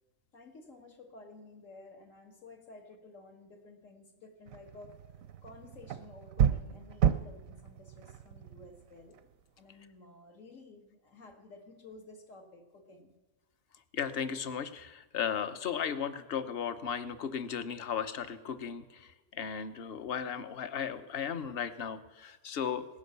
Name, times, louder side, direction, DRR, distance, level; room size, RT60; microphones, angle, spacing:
voice 1, 0.3-5.0 5.4-9.2 9.6-13.1, left 3 dB, 75° left, 3 dB, 2.1 m, -53 dB
sound 1, 4.5-9.3, right 9 dB, 90° right, 1.1 m, -32 dB
voice 2, 13.9-22.9, left 7 dB, 50° left, 11 dB, 1.0 m, -36 dB
17.5 x 10.5 x 6.8 m, 1.2 s
omnidirectional pair, 1.4 m